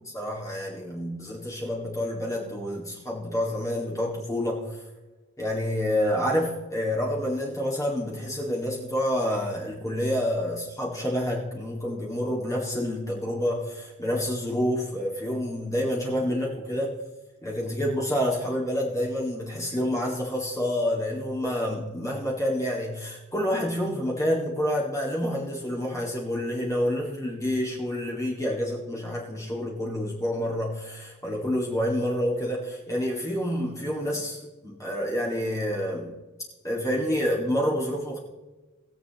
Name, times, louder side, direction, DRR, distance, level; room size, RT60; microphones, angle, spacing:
voice 1, 0.1-4.8 5.4-16.9 17.4-36.1 36.6-38.2, equal, 15° left, -3 dB, 2.0 m, -28 dB
20.5 x 7.7 x 3.0 m, 1.2 s
head